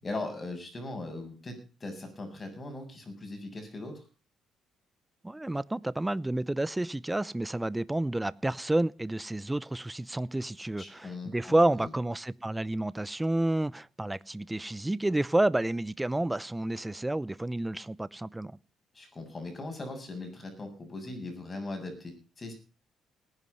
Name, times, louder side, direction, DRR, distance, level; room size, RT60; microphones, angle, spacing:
voice 1, 0.0-1.5 1.8-4.0 10.8-11.9 18.9-22.5, left 2 dB, 25° left, 7.8 m, -39 dB
voice 2, 5.2-18.5, right 1 dB, 10° right, 0.7 m, -30 dB
18.5 x 11.0 x 5.6 m
cardioid pair, 105°, 0 cm